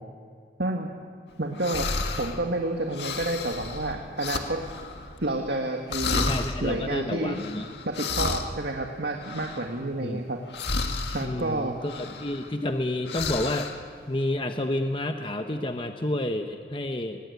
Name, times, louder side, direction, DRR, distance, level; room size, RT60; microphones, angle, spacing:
voice 1, 1.4-1.9 2.2-4.6 5.2-6.3 6.6-7.4 7.9-10.4 11.1-11.8, right 2 dB, 70° right, 2 dB, 1.9 m, -29 dB
sound 1, 1.5-2.4 2.9-5.6 5.9-6.6 7.3-10.0 10.5-11.3 11.8-12.8 13.0-13.9, left 4 dB, 75° left, 1.9 m, -32 dB
voice 2, 6.1-7.7 10.0-10.2 11.2-13.7 14.1-17.2, left 1 dB, 30° left, 6 dB, 1.0 m, -30 dB
22.5 x 20.5 x 9.5 m, 2.1 s
head